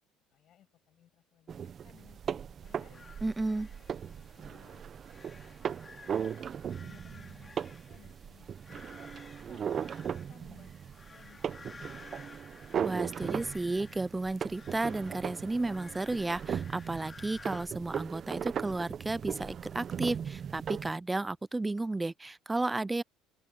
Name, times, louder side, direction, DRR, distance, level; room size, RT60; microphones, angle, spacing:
voice 1, 0.3-3.0 3.4-6.5 6.8-10.8 11.1-12.7, left 11 dB, 55° left, 7.7 m, -62 dB
sound 1, 1.5-20.9, right 8 dB, 45° right, 0.9 m, -38 dB
sound 2, 2.6-17.7, left 4 dB, 25° left, 3.4 m, -54 dB
voice 2, 3.2-3.7 12.8-23.0, right 2 dB, 15° right, 0.6 m, -33 dB
open air
supercardioid pair, 80°, 0 cm